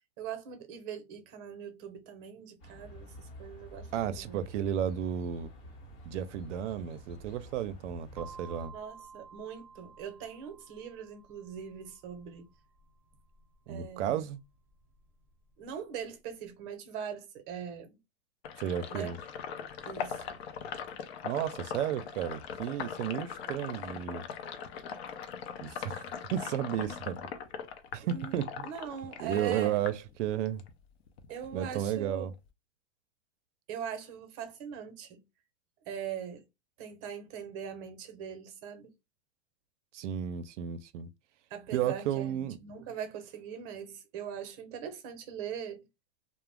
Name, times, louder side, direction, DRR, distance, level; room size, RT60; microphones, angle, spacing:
voice 1, 0.2-4.4 8.7-12.5 13.7-14.2 15.6-18.0 18.9-19.2 19.8-20.4 28.0-28.3 28.6-29.8 31.3-32.3 33.7-35.2 35.9-36.5 36.8-38.9 41.5-45.8, right 8 dB, 45° right, 0.7 m, -41 dB
sound 1, 2.6-8.7, equal, 35° left, 0.9 m, -50 dB
voice 2, 3.9-5.5 6.1-8.7 13.7-14.4 18.6-19.2 21.2-24.2 25.6-26.0 26.3-27.3 27.9-28.7 29.2-29.9 30.2-30.6 31.5-32.3 39.9-41.1 41.7-42.6, right 10 dB, 80° right, 0.5 m, -33 dB
sound 2, 8.2-16.0, right 5 dB, 5° right, 0.4 m, -54 dB
Sink (filling or washing), 18.4-30.7 31.1-32.5, left 7 dB, 60° left, 0.6 m, -41 dB
2.4 x 2.0 x 3.1 m
supercardioid pair, 140°, 36 cm